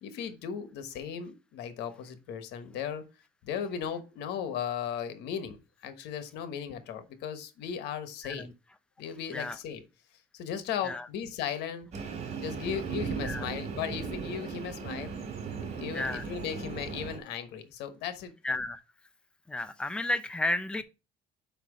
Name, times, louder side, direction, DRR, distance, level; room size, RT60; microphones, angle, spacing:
voice 1, 0.0-3.0 3.4-8.5 9.0-9.8 10.3-11.9 12.4-15.1 15.6-18.3, left 8 dB, 85° left, 1.2 m, -36 dB
Train, 11.9-17.2, right 6 dB, 45° right, 2.7 m, -37 dB
voice 2, 18.4-18.8 19.5-20.8, left 2 dB, 5° left, 0.6 m, -32 dB
5.9 x 5.1 x 4.9 m
cardioid pair, 110°, 17 cm